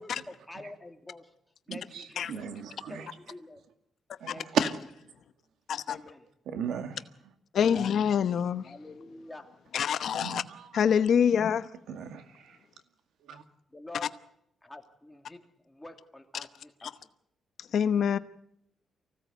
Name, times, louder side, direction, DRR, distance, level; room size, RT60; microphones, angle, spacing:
voice 1, 0.0-1.3 1.7-2.4 2.9-3.6 4.2-4.6 5.9-6.3 8.6-9.6 13.7-14.3 14.6-17.1, left 2 dB, 10° left, 2.5 m, -47 dB
voice 2, 1.7-3.1 4.2-4.4 6.5-7.0 10.1-10.7 11.9-12.6 13.2-13.4, right 7 dB, 80° right, 2.0 m, -39 dB
voice 3, 7.5-8.7 9.7-10.4 10.7-11.7 17.7-18.2, left 7 dB, 60° left, 0.9 m, -25 dB
24.5 x 16.5 x 8.2 m
cardioid pair, 130°, 0 cm